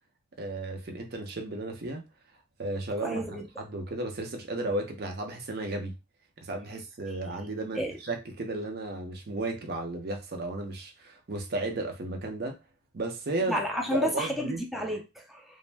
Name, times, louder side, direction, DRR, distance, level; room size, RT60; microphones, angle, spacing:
voice 1, 0.4-2.0 2.6-5.9 6.4-12.6 12.9-13.6 13.9-14.6, right 2 dB, 55° right, 0.6 m, -34 dB
voice 2, 3.0-3.5 7.7-7.9 13.5-15.4, equal, ahead, 0.3 m, -31 dB
2.5 x 2.0 x 3.2 m
head